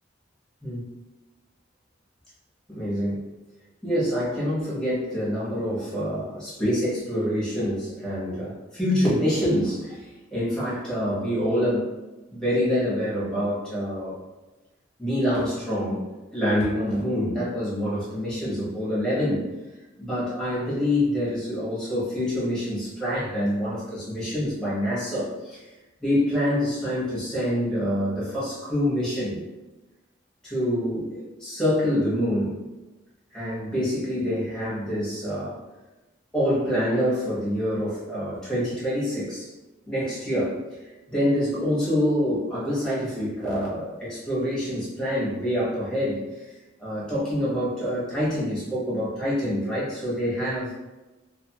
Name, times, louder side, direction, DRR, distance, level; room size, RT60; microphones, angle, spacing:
voice 1, 2.7-3.2 3.8-11.9 12.3-14.2 15.0-16.0 16.3-19.4 20.0-25.7 26.0-29.4 30.4-32.5 33.3-35.6 36.3-39.5 39.9-40.6 41.1-46.5 46.8-50.7, equal, 5° left, -9 dB, 0.9 m, -26 dB
2.5 x 2.4 x 2.7 m, 1.1 s
head